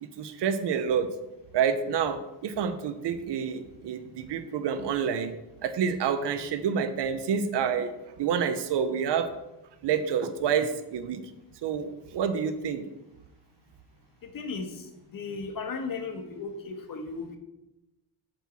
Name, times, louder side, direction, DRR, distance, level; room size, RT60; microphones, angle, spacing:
voice 1, 0.0-1.1 1.5-5.3 5.6-9.3 9.8-11.2 11.6-12.8, right 7 dB, 65° right, 10 dB, 0.8 m, -28 dB
voice 2, 14.2-17.4, left 4 dB, 50° left, 5 dB, 1.4 m, -36 dB
7.9 x 4.6 x 7.1 m, 0.98 s
cardioid pair, 150°, 44 cm